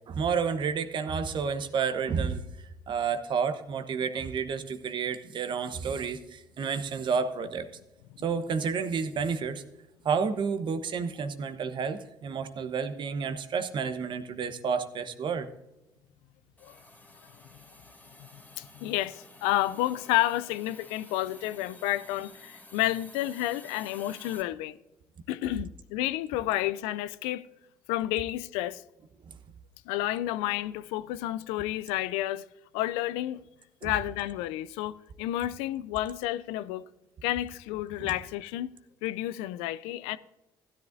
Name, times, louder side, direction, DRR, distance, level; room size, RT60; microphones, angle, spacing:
voice 1, 0.1-2.4 2.9-7.7 8.2-9.6 10.0-15.5 29.2-29.4 33.8-33.9 38.0-38.1, right 6 dB, 50° right, 1.1 m, -30 dB
Hiss, 16.6-24.4, left 1 dB, 15° left, 2.7 m, -52 dB
voice 2, 18.6-24.8 25.3-27.5 27.9-28.8 29.9-32.5 32.7-33.4 33.8-36.9 37.2-38.7 39.0-40.2, left 15 dB, 75° left, 0.4 m, -30 dB
15.5 x 10.5 x 2.7 m
hypercardioid pair, 55°, 10 cm